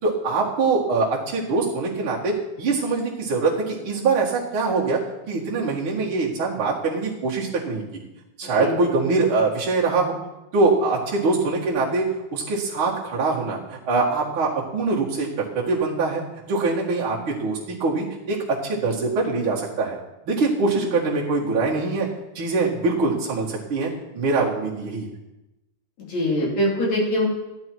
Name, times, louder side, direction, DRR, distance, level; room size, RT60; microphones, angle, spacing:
voice 1, 0.0-5.0 5.3-7.8 8.4-10.2 10.5-12.0 12.3-16.2 16.5-20.0 20.3-22.1 22.3-25.1, right 3 dB, 50° right, -6 dB, 2.6 m, -23 dB
voice 2, 26.0-27.3, left 1 dB, 65° left, -4 dB, 4.2 m, -23 dB
14.0 x 9.7 x 4.6 m, 0.98 s
omnidirectional pair, 3.3 m